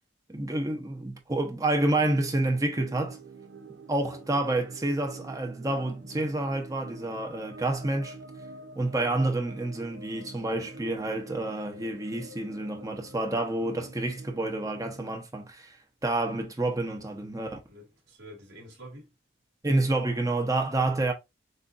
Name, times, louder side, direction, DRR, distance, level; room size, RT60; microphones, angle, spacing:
voice 1, 0.3-3.2 3.7-8.2 8.8-15.8 16.0-17.6 19.6-21.1, right 2 dB, 20° right, 0.9 m, -29 dB
sound 1, 1.7-15.2, right 3 dB, 85° right, 0.7 m, -46 dB
voice 2, 17.7-19.1, equal, 60° right, 2.5 m, -49 dB
6.4 x 2.6 x 2.5 m
head